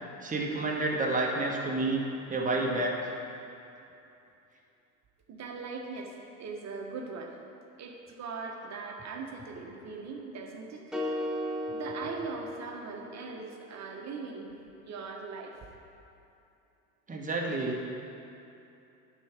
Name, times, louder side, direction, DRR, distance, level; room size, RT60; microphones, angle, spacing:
voice 1, 0.2-2.0 2.3-3.1 17.1-17.8, right 2 dB, 20° right, -1 dB, 1.5 m, -29 dB
voice 2, 5.3-7.4 7.8-10.8 11.7-14.5 14.8-15.5, right 4 dB, 40° right, 1 dB, 1.4 m, -40 dB
sound 1, 10.9-13.2, left 1 dB, ahead, 1.1 m, -35 dB
11.5 x 4.7 x 5.2 m, 2.8 s
hypercardioid pair, 85°, 43 cm